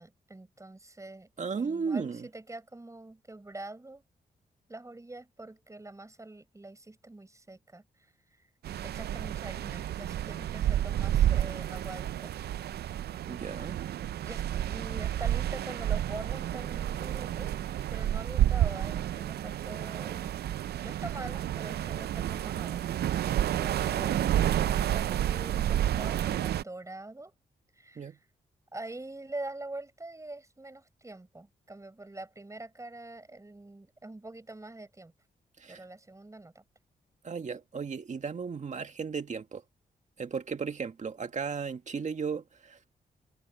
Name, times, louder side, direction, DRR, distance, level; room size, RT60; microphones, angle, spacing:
voice 1, 0.0-4.0 4.7-7.9 8.8-12.4 14.2-17.5 17.9-20.3 20.8-22.9 23.5-27.3 27.8-28.2 28.7-35.1 35.7-36.6, right 2 dB, 20° right, 7.0 m, -44 dB
voice 2, 1.4-2.3 13.3-13.8 28.0-28.2 35.6-35.8 37.2-39.6 40.2-42.8, right 5 dB, 50° right, 1.9 m, -35 dB
sound 1, 8.6-26.6, right 11 dB, 85° right, 0.5 m, -30 dB
cardioid pair, 85°, 16 cm